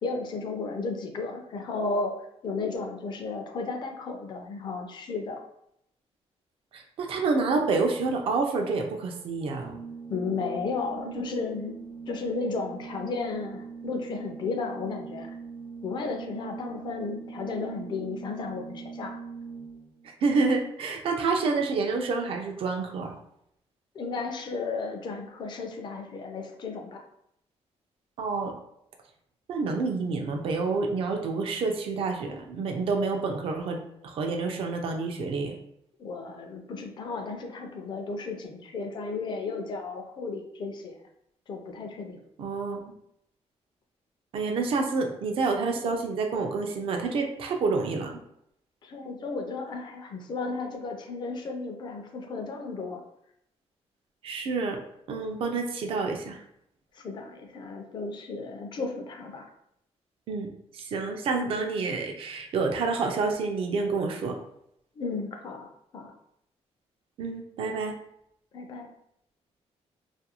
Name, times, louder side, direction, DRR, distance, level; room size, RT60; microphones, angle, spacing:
voice 1, 0.0-2.2 2.4-5.4 10.1-11.8 12.1-15.3 15.8-19.2 23.9-27.0 36.0-40.9 41.5-42.2 48.8-53.0 56.9-59.4 65.0-65.7 65.9-66.1 68.5-68.9, left 4 dB, 40° left, 4 dB, 0.4 m, -34 dB
voice 2, 6.7-9.8 20.2-23.2 28.2-28.5 29.5-35.6 42.4-42.8 44.3-48.2 54.2-54.8 55.1-56.4 60.3-64.4 67.2-68.0, right 4 dB, 55° right, 3 dB, 0.4 m, -28 dB
Organ, 9.4-20.1, right 5 dB, 80° right, 0.7 m, -42 dB
2.4 x 2.2 x 2.8 m, 0.75 s
wide cardioid pair, 175°, 11 cm